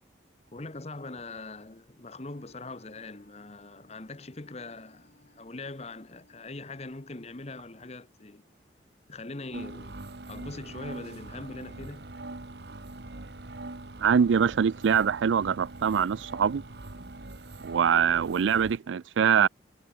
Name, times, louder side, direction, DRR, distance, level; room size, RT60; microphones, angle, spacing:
voice 1, 0.5-8.4 9.1-10.0 10.3-12.1, left 2 dB, 35° left, 1.1 m, -42 dB
Wind instrument woodwind instrument, 2.1-7.5, left 1 dB, 70° left, 5.5 m, -63 dB
sound 1, 9.5-18.8, right 2 dB, 60° right, 1.5 m, -42 dB
voice 2, 14.0-16.6 17.6-19.5, right 7 dB, 85° right, 0.4 m, -23 dB
head